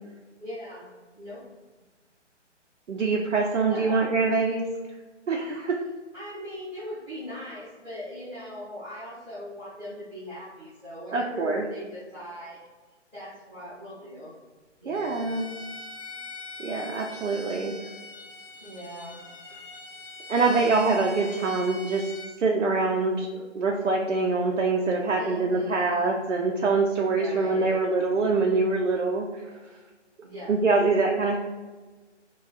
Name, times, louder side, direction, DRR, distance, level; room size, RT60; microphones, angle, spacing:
voice 1, 0.4-0.8 1.1-1.4 3.7-4.2 6.1-12.6 13.1-14.3 14.8-15.3 18.6-19.2 20.2-20.8 25.2-26.1 27.1-27.8 30.2-30.7, equal, 5° left, -14 dB, 1.2 m, -40 dB
voice 2, 2.9-4.7 5.3-5.8 11.1-11.7 14.9-15.5 16.6-17.7 20.3-22.1 22.4-29.5 30.5-31.4, right 3 dB, 80° right, -1 dB, 0.6 m, -24 dB
Bowed string instrument, 14.9-22.3, left 2 dB, 45° left, 0.5 m, -42 dB
4.8 x 2.3 x 2.4 m, 1.3 s
figure-of-eight pair, 150°, 36 cm